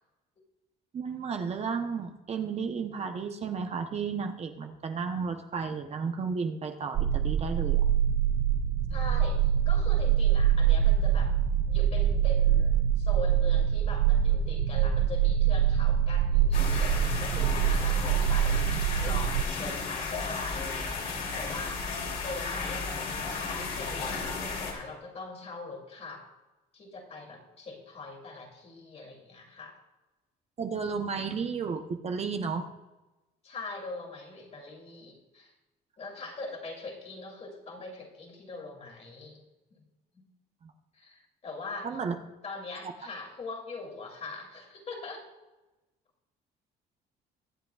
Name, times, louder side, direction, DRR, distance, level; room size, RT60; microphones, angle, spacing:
voice 1, 0.9-7.9 30.6-32.7 40.6-40.7 41.8-42.1, right 5 dB, 40° right, 5 dB, 0.8 m, -33 dB
sound 1, 7.0-19.4, right 9 dB, 65° right, 0.4 m, -24 dB
voice 2, 8.9-11.3 11.6-21.8 22.2-26.2 26.7-29.8 33.4-35.5 36.0-39.4 40.1-40.2 40.9-41.9 42.4-45.3, left 3 dB, 40° left, 1 dB, 2.7 m, -42 dB
sound 2, 16.5-24.7, left 4 dB, 60° left, 2.9 m, -34 dB
22.5 x 7.6 x 2.4 m, 1.1 s
cardioid pair, 110°, 17 cm